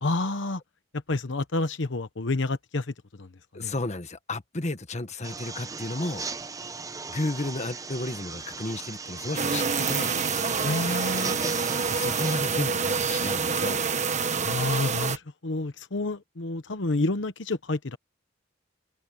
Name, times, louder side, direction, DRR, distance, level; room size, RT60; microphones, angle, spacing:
voice 1, 0.0-0.6 1.1-2.9 3.2-3.3 3.5-3.7 10.6-11.4 14.4-18.0, left 2 dB, 75° left, 1.0 m, -29 dB
voice 2, 3.5-6.2 7.1-10.2 11.9-13.8, left 2 dB, 40° left, 1.4 m, -33 dB
sound 1, 5.2-12.4, right 4 dB, 20° right, 0.8 m, -37 dB
sound 2, 9.4-15.2, right 5 dB, 40° right, 1.3 m, -27 dB
head